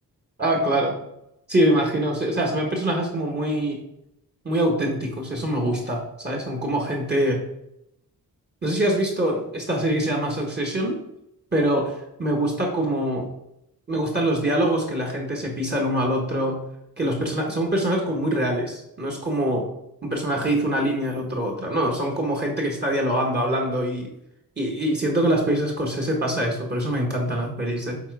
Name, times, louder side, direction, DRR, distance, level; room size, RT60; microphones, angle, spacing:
voice 1, 0.4-0.9 1.5-3.8 4.4-7.4 8.6-11.0 11.5-13.3 13.9-16.6 17.0-19.7 20.0-24.1 24.6-28.0, right 1 dB, 25° right, 0 dB, 1.3 m, -24 dB
7.2 x 4.5 x 4.7 m, 0.82 s
wide cardioid pair, 150°, 37 cm